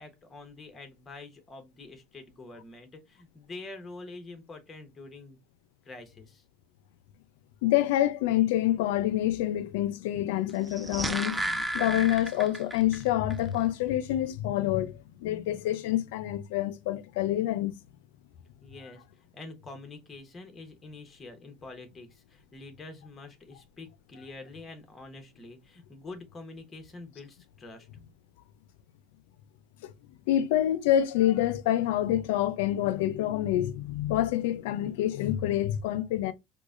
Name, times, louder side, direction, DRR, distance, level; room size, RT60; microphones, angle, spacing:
voice 1, 0.0-5.4 5.8-6.4 18.6-27.9, left 3 dB, 25° left, 1.1 m, -46 dB
voice 2, 7.6-17.7 29.8-29.9 30.3-36.3, left 13 dB, 85° left, 0.4 m, -27 dB
sound 1, 10.6-13.0 13.3-13.4, right 1 dB, 15° right, 0.4 m, -33 dB
4.7 x 2.2 x 2.5 m
supercardioid pair, 100°, 0 cm